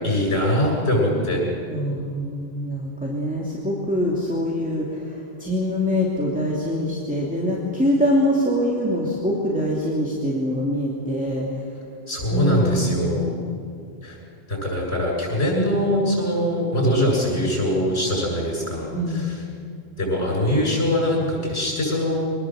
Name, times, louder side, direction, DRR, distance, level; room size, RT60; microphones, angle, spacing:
voice 1, 0.0-1.4 12.1-13.3 14.0-14.2 14.5-19.4 20.0-22.2, left 1 dB, 85° left, -2 dB, 7.8 m, -22 dB
voice 2, 1.7-11.5 12.3-13.4 18.9-19.3, equal, 5° right, -4 dB, 2.6 m, -24 dB
24.0 x 19.0 x 7.8 m, 2.3 s
omnidirectional pair, 1.1 m